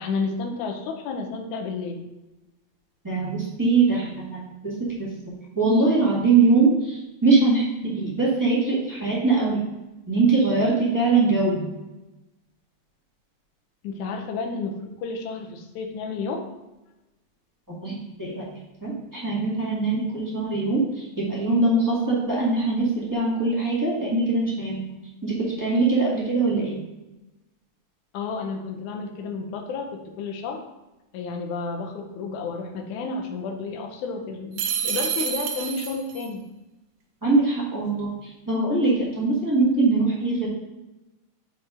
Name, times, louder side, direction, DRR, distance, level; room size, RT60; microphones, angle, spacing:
voice 1, 0.0-2.0 13.8-16.5 28.1-30.6 31.1-36.4, left 4 dB, 80° left, 3 dB, 2.3 m, -31 dB
voice 2, 3.0-4.7 5.0-5.1 5.5-9.6 10.1-11.6 17.8-18.5 18.8-20.8 21.2-24.8 25.2-26.8 37.2-40.5, right 3 dB, 10° right, -7 dB, 1.2 m, -22 dB
sound 1, 34.6-36.3, right 8 dB, 80° right, 2.1 m, -28 dB
5.9 x 4.2 x 5.0 m, 1.0 s
omnidirectional pair, 3.4 m